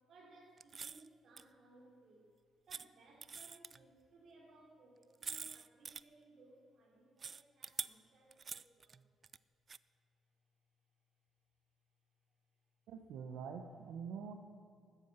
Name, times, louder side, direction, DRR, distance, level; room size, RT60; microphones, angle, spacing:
voice 1, 0.0-2.3 2.7-9.1 14.0-14.1, right 2 dB, 60° right, -1 dB, 4.0 m, -63 dB
sound 1, 0.6-1.1 1.4-1.5 2.7-2.8 3.2-3.8 5.0-6.0 7.2-7.9 8.3-9.4 9.7-9.8, right 5 dB, 40° right, 0.3 m, -45 dB
voice 2, 12.9-14.3, right 6 dB, 80° right, 3 dB, 1.1 m, -45 dB
13.5 x 9.9 x 6.8 m, 2.3 s
cardioid pair, 90°, 0 cm